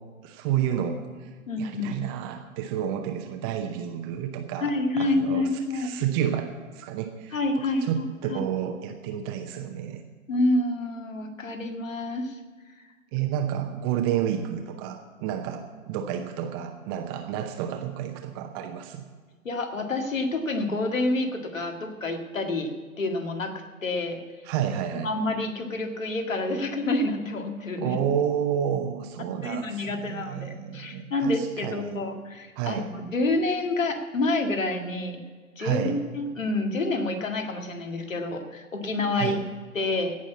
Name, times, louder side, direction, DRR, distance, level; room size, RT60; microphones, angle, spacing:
voice 1, 0.2-1.3 1.6-7.4 7.8-10.0 13.1-19.0 24.5-25.1 27.8-32.0 32.6-32.9 35.6-36.0 39.1-39.4, right 9 dB, 15° right, 5 dB, 0.6 m, -30 dB
voice 2, 1.5-1.9 4.6-6.0 7.3-8.4 10.3-12.4 19.4-22.7 23.0-24.2 24.9-28.0 29.4-35.2 35.6-39.4 39.7-40.2, left 2 dB, 70° left, 5 dB, 2.0 m, -28 dB
17.0 x 6.3 x 8.4 m, 1.5 s
figure-of-eight pair, 120°, 41 cm